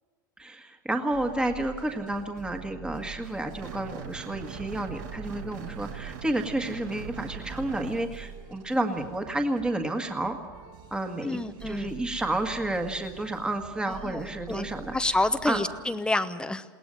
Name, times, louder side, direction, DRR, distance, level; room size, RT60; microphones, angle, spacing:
voice 1, 0.4-10.4 10.9-14.9 15.4-15.6, right 1 dB, 10° right, 4 dB, 1.7 m, -30 dB
sound 1, 1.1-15.8, right 9 dB, 50° right, 7.5 m, -46 dB
sound 2, 3.6-8.0, right 7 dB, 70° right, 1.9 m, -41 dB
voice 2, 11.2-11.9 13.9-14.2 14.5-16.6, left 2 dB, 10° left, 11 dB, 0.8 m, -28 dB
21.0 x 18.0 x 7.7 m, 1.4 s
supercardioid pair, 115°, 11 cm